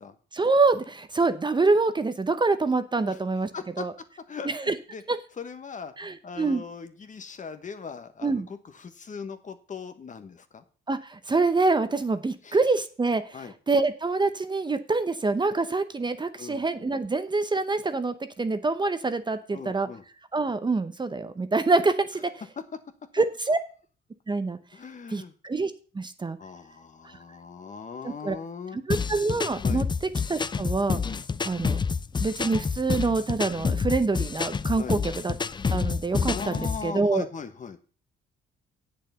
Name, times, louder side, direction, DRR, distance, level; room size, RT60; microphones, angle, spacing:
voice 1, 0.3-3.5 3.8-3.9 4.4-4.7 5.1-5.2 6.0-6.6 8.2-8.5 10.9-13.4 13.7-19.9 20.3-22.2 23.2-23.6 24.3-24.6 25.1-26.4 28.0-28.4 28.9-29.9 30.3-31.0 31.4-31.8 32.2-35.3 35.7-37.2, right 3 dB, 20° right, 10 dB, 0.8 m, -26 dB
voice 2, 3.5-3.8 4.3-5.0 5.4-10.6 12.4-12.6 13.3-13.5 16.4-16.6 19.5-20.0 24.7-25.3 26.4-28.8 29.6-29.9 31.0-31.2 34.8-35.0 36.3-37.8, left 6 dB, 40° left, 10 dB, 1.2 m, -39 dB
sound 1, 28.9-36.9, left 5 dB, 20° left, 0.4 m, -28 dB
8.3 x 6.7 x 6.7 m, 0.40 s
cardioid pair, 90°, 20 cm